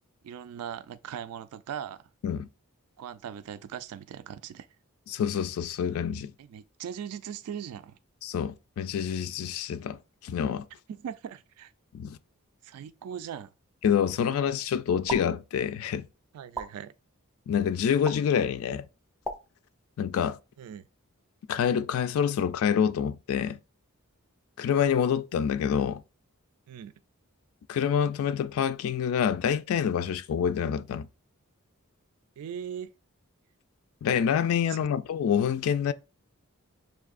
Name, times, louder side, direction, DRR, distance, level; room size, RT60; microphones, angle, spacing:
voice 1, 0.2-2.0 3.0-4.7 6.4-8.0 10.9-11.7 12.6-13.5 16.3-16.9 20.6-20.9 26.7-26.9 32.4-32.9 34.7-34.9, right 8 dB, 80° right, 0.3 m, -39 dB
voice 2, 5.1-6.3 8.2-10.6 11.9-12.2 13.8-16.1 17.5-18.9 20.0-20.4 21.5-23.6 24.6-26.0 27.7-31.1 34.0-35.9, left 8 dB, 65° left, 0.3 m, -27 dB
sound 1, 15.1-15.2 16.5-16.7 18.1-18.2 19.2-19.4, right 2 dB, 5° left, 0.5 m, -33 dB
6.7 x 2.6 x 2.4 m
head